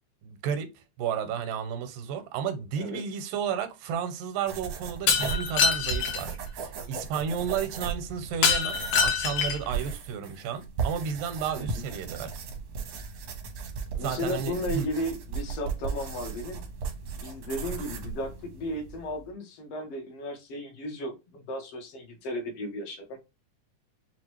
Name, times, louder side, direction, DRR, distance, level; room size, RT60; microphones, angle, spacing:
voice 1, 0.2-12.3 13.9-14.9, right 7 dB, 90° right, 2.4 m, -32 dB
sound 1, 4.5-19.3, right 5 dB, 70° right, 1.3 m, -36 dB
Shatter, 5.1-6.2 8.4-9.7, left 6 dB, 80° left, 2.5 m, -25 dB
voice 2, 14.0-16.6 17.2-23.2, left 1 dB, 60° left, 1.8 m, -35 dB
6.2 x 2.4 x 3.0 m
omnidirectional pair, 3.8 m